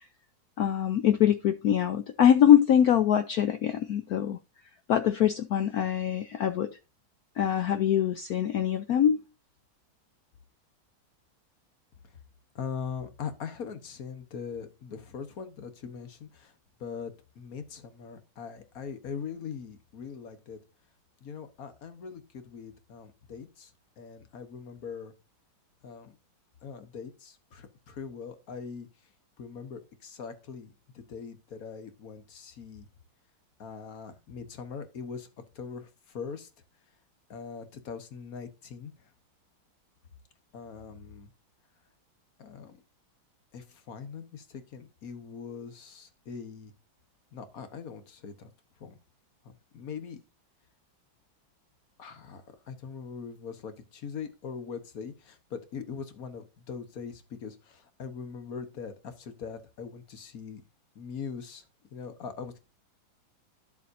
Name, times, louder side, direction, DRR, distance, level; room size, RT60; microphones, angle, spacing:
voice 1, 0.6-4.4 4.9-6.7 7.4-9.2, left 10 dB, 80° left, 0.8 m, -23 dB
voice 2, 12.5-16.5 16.8-20.6 21.2-23.7 24.0-25.1 25.8-26.2 26.6-28.9 29.4-32.9 33.6-35.3 35.5-36.5 37.3-39.1 40.5-41.3 42.4-42.8 43.5-46.7 47.3-48.5 48.8-49.0 49.4-50.2 52.0-60.6 60.9-61.6 61.9-62.6, left 6 dB, 50° left, 1.5 m, -41 dB
11.0 x 7.3 x 2.7 m
omnidirectional pair, 2.2 m